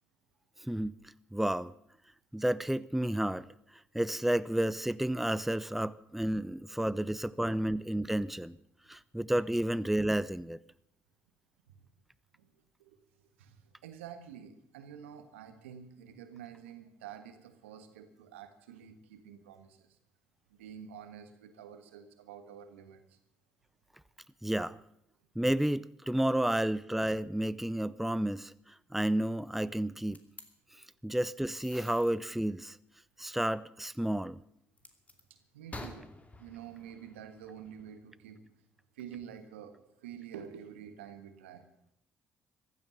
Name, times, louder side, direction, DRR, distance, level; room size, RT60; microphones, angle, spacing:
voice 1, 0.6-1.0 1.3-1.7 2.3-3.5 3.9-8.6 8.9-10.6 24.4-24.8 25.4-30.2 31.0-32.8 33.2-34.4, right 1 dB, 5° right, 0.6 m, -31 dB
voice 2, 13.4-19.9 20.5-23.2 35.3-36.1 36.4-38.4 38.9-41.7, right 8 dB, 85° right, 1.5 m, -48 dB
sound 1, 30.1-30.5 31.5-32.1 34.8-35.2 35.7-37.9, left 2 dB, 20° left, 2.6 m, -49 dB
15.0 x 12.5 x 7.0 m
hypercardioid pair, 55°, 6 cm